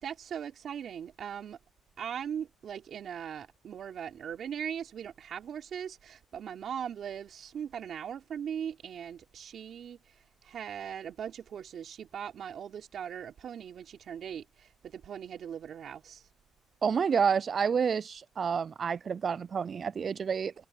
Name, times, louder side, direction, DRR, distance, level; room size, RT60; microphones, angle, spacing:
voice 1, 0.0-1.6 2.0-10.0 10.4-16.2, right 8 dB, 60° right, 3.3 m, -39 dB
voice 2, 16.8-20.5, right 6 dB, 45° right, 0.4 m, -29 dB
cardioid pair, 90°, 0 cm